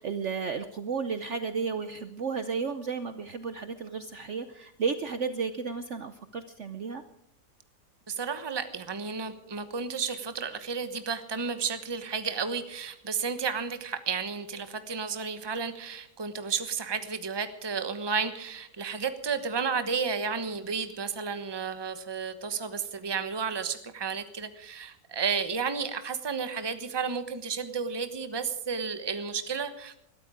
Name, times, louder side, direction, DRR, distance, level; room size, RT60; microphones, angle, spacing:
voice 1, 0.0-7.0, right 5 dB, 55° right, 10 dB, 0.9 m, -33 dB
voice 2, 8.1-29.9, right 5 dB, 20° right, 10 dB, 0.9 m, -32 dB
21.0 x 13.0 x 5.0 m, 0.75 s
omnidirectional pair, 1.8 m